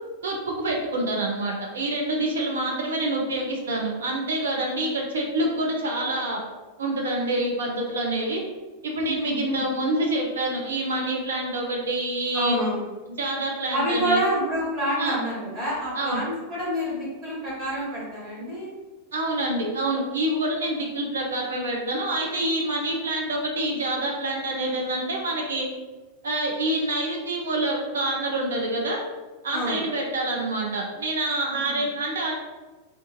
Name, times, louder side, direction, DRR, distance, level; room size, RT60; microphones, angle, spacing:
voice 1, 0.2-6.4 6.8-8.4 8.8-12.6 13.2-14.2 15.0-15.2 16.0-16.2 19.1-25.7 26.2-29.0 29.4-32.4, right 1 dB, 65° right, 0 dB, 0.6 m, -27 dB
voice 2, 9.0-9.6 12.3-12.8 13.7-18.7 29.5-29.8 31.4-31.8, equal, 30° right, -6 dB, 1.4 m, -27 dB
2.5 x 2.4 x 2.6 m, 1.2 s
figure-of-eight pair, 90°, 0 cm